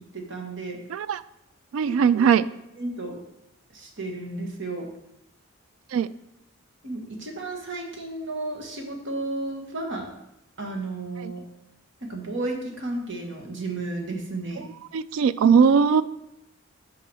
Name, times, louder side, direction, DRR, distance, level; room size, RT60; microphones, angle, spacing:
voice 1, 0.1-0.8 1.8-2.2 2.8-3.2 3.7-4.9 6.8-10.1 10.6-11.4 12.0-14.7, right 2 dB, 60° right, 2 dB, 1.5 m, -33 dB
voice 2, 0.9-1.2 1.7-2.4 5.9-6.1 11.2-11.3 14.9-16.0, right 6 dB, 90° right, 16 dB, 0.3 m, -19 dB
6.2 x 4.8 x 6.2 m, 0.87 s
head